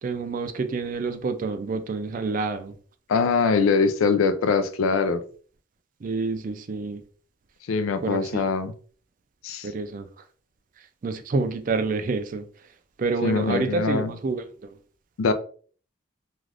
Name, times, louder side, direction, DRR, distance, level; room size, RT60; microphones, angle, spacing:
voice 1, 0.0-2.7 6.0-7.0 8.0-8.4 9.6-10.1 11.0-12.4 13.0-14.4, right 4 dB, 40° right, 0.3 m, -28 dB
voice 2, 3.1-5.2 7.7-8.7 9.4-9.7 13.2-14.1 15.2-15.3, left 4 dB, 85° left, 0.4 m, -23 dB
2.4 x 2.4 x 3.2 m
head